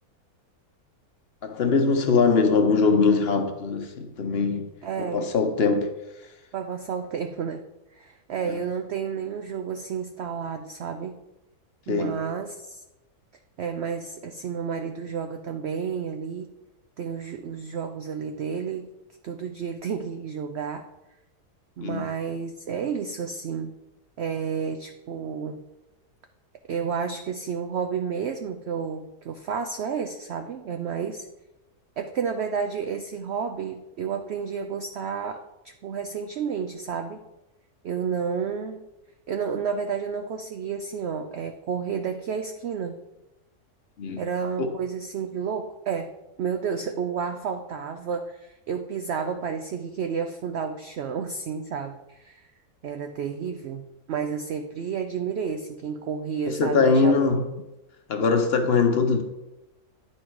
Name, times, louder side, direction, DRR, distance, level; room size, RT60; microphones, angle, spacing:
voice 1, 1.4-4.7 5.1-5.9 11.9-12.1 21.8-22.0 44.0-44.2 44.6-44.7 56.5-57.4 58.1-59.2, left 4 dB, 50° left, 5 dB, 0.9 m, -21 dB
voice 2, 4.8-5.3 6.5-7.7 7.9-11.2 11.9-12.8 13.6-16.5 17.0-18.9 19.2-20.8 21.8-23.7 24.2-25.6 26.7-31.3 32.0-35.4 35.8-37.2 37.8-38.8 39.3-43.0 44.2-46.1 46.4-52.5 52.8-57.1, right 6 dB, 70° right, 6 dB, 0.6 m, -31 dB
9.9 x 4.4 x 4.6 m, 1.0 s
omnidirectional pair, 1.6 m